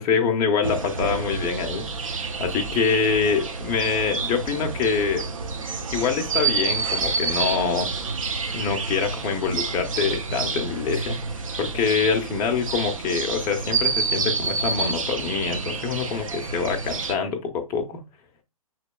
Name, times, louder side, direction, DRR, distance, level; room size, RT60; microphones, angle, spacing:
voice 1, 0.0-5.3 5.9-11.2 11.6-18.0, left 6 dB, 15° left, 0.5 m, -25 dB
sound 1, 0.6-17.1, right 4 dB, 60° right, 0.8 m, -28 dB
6.0 x 3.0 x 2.2 m
figure-of-eight pair, 135°, 19 cm